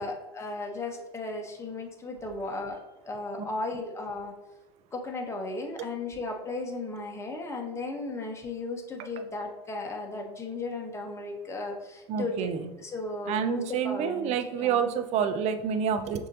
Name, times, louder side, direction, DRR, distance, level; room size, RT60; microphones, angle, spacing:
voice 1, 0.0-2.8 3.0-4.3 4.9-14.8, left 2 dB, 20° left, 2 dB, 1.0 m, -35 dB
voice 2, 12.1-12.7 13.3-16.3, right 7 dB, 50° right, 9 dB, 0.5 m, -28 dB
6.1 x 2.8 x 2.8 m, 0.99 s
hypercardioid pair, 80°, 14 cm